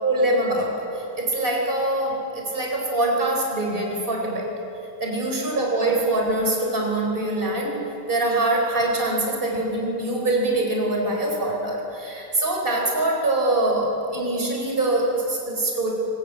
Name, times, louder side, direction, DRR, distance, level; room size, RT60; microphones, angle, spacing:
voice 1, 0.0-4.5 5.0-7.8 8.1-15.9, right 2 dB, 30° right, 0 dB, 4.4 m, -24 dB
23.5 x 20.5 x 8.6 m, 2.8 s
omnidirectional pair, 1.8 m